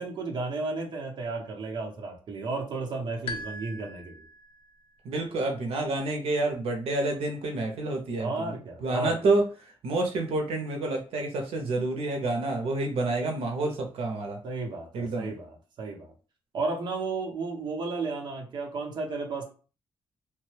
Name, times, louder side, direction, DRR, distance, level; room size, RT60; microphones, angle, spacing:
voice 1, 0.0-4.2 8.2-9.2 14.4-16.1 16.5-19.4, right 3 dB, 50° right, 0 dB, 0.8 m, -33 dB
sound 1, 3.3-4.8, left 2 dB, 65° left, 0.5 m, -40 dB
voice 2, 5.0-8.5 8.8-14.4 14.9-15.3, right 2 dB, 85° right, 3 dB, 0.7 m, -28 dB
3.0 x 2.2 x 3.3 m, 0.37 s
wide cardioid pair, 160°, 10 cm